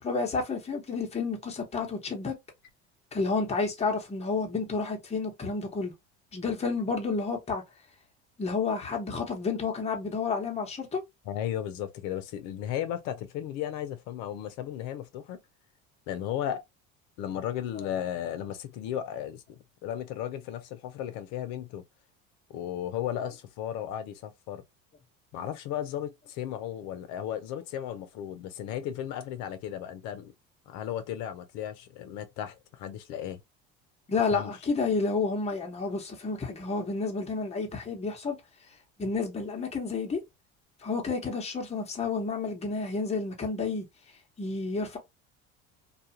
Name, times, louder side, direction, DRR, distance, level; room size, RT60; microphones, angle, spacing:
voice 1, 0.0-2.4 3.1-5.9 6.3-7.6 8.4-11.0 34.1-38.4 39.0-40.2 40.8-43.8 44.4-45.0, left 4 dB, 20° left, 1.0 m, -30 dB
voice 2, 11.3-15.4 16.1-16.6 17.2-21.8 22.5-24.6 25.3-30.3 30.7-33.4 34.3-34.5, left 10 dB, 70° left, 0.7 m, -35 dB
2.4 x 2.3 x 2.7 m
supercardioid pair, 100°, 30 cm